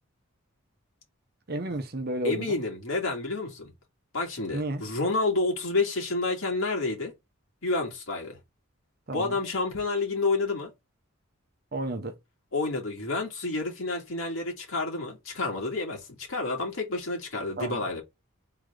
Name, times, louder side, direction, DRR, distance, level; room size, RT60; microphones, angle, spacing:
voice 1, 1.5-2.6 4.5-4.8 9.1-9.4 11.7-12.2 17.6-17.8, right 1 dB, 50° right, 0.8 m, -32 dB
voice 2, 2.2-3.7 4.1-7.1 7.6-8.4 9.1-10.7 12.5-18.0, left 3 dB, 85° left, 2.2 m, -29 dB
3.9 x 3.4 x 3.5 m
head